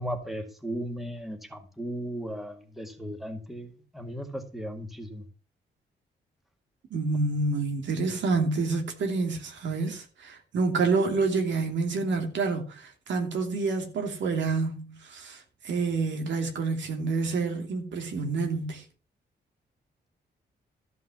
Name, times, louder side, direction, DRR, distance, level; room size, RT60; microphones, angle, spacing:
voice 1, 0.0-5.2, equal, ahead, 1.9 m, -36 dB
voice 2, 6.9-18.8, right 4 dB, 90° right, 2.7 m, -28 dB
13.5 x 5.4 x 7.0 m
cardioid pair, 115°, 18 cm